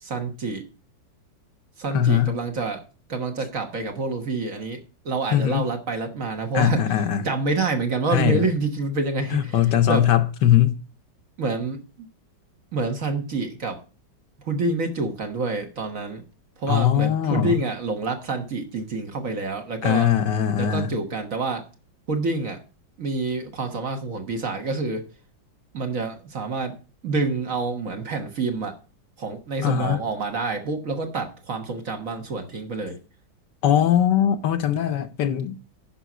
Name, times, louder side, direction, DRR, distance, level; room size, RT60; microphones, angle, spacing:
voice 1, 0.0-0.7 1.8-2.8 3.1-6.9 7.2-10.1 11.4-11.8 12.7-13.8 14.4-16.2 16.6-20.1 20.6-21.7 22.1-22.6 23.0-25.1 25.7-26.8 27.0-28.7 29.2-33.0, right 3 dB, 45° right, 1.4 m, -27 dB
voice 2, 1.9-2.4 5.3-5.6 6.5-7.2 8.1-8.5 9.3-10.8 16.7-17.6 19.8-20.9 29.6-30.0 33.6-35.6, left 10 dB, 65° left, 1.3 m, -20 dB
10.0 x 5.5 x 5.9 m
omnidirectional pair, 2.1 m